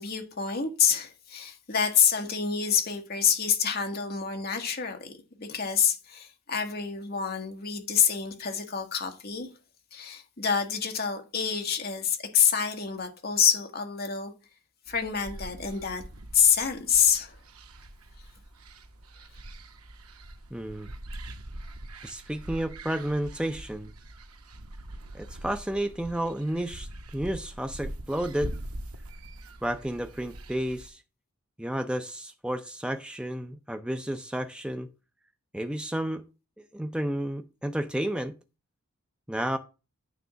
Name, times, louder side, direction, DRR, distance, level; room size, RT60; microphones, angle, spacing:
voice 1, 0.0-9.5 9.9-14.3 14.9-16.0 16.3-17.4, left 7 dB, 45° left, 1.4 m, -27 dB
sound 1, 14.9-30.9, right 1 dB, 85° right, 1.0 m, -43 dB
voice 2, 20.5-20.9 22.0-23.9 25.1-26.9 27.1-28.5 29.6-31.0 31.6-34.9 35.5-36.2 36.7-38.3 39.3-39.6, right 1 dB, 5° right, 0.4 m, -31 dB
9.3 x 3.6 x 6.1 m
head